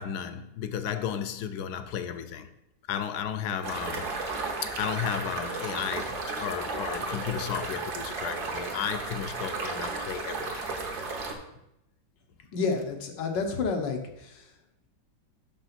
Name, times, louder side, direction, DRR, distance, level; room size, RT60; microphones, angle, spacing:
voice 1, 0.0-2.5 2.9-4.2 4.6-10.7, left 8 dB, 75° left, 1.1 m, -33 dB
sound 1, 3.6-11.3, right 3 dB, 65° right, 1.6 m, -34 dB
voice 2, 12.5-14.3, left 4 dB, 90° left, 1.7 m, -29 dB
5.9 x 5.3 x 5.8 m
omnidirectional pair, 1.9 m